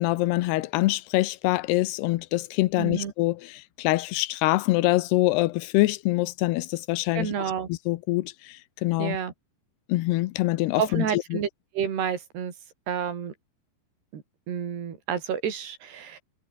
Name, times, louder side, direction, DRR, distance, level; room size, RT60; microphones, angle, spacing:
voice 1, 0.0-7.3 7.7-9.2 9.9-11.1 11.3-11.4, left 18 dB, 90° left, 2.9 m, -25 dB
voice 2, 2.8-3.1 7.2-7.7 9.0-9.3 10.8-11.5 11.8-12.5 12.9-13.3 14.1-14.2 14.5-16.2, right 8 dB, 90° right, 5.4 m, -29 dB
omnidirectional pair, 4.6 m